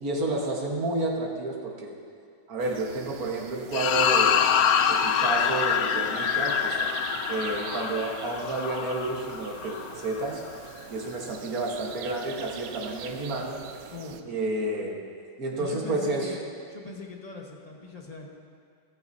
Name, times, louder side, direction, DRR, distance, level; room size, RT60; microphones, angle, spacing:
voice 1, 0.0-2.0 2.5-4.5 4.9-6.8 7.3-10.4 10.9-13.6 14.3-15.0 15.4-16.3, right 2 dB, 55° right, -1 dB, 1.9 m, -30 dB
sound 1, 2.6-14.2, right 8 dB, 70° right, 0.9 m, -44 dB
sound 2, 3.7-10.3, left 7 dB, 70° left, 0.9 m, -25 dB
voice 2, 13.9-14.3 15.6-18.3, left 3 dB, 25° left, 0 dB, 1.1 m, -41 dB
14.0 x 14.0 x 2.8 m, 2.2 s
omnidirectional pair, 2.0 m